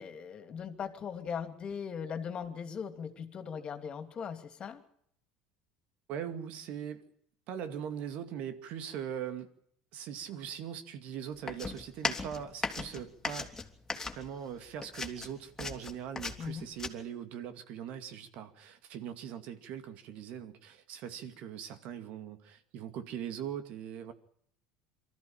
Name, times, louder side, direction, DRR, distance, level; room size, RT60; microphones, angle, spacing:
voice 1, 0.0-4.8 16.4-16.7, left 7 dB, 40° left, 8 dB, 2.9 m, -39 dB
voice 2, 6.1-7.0 7.5-9.5 9.9-13.5 13.9-24.1, right 9 dB, 60° right, 9 dB, 2.3 m, -41 dB
sound 1, 11.5-14.5 14.8-16.9, left 4 dB, 20° left, 3.0 m, -37 dB
24.0 x 14.0 x 8.9 m, 0.68 s
hypercardioid pair, 80°, 3 cm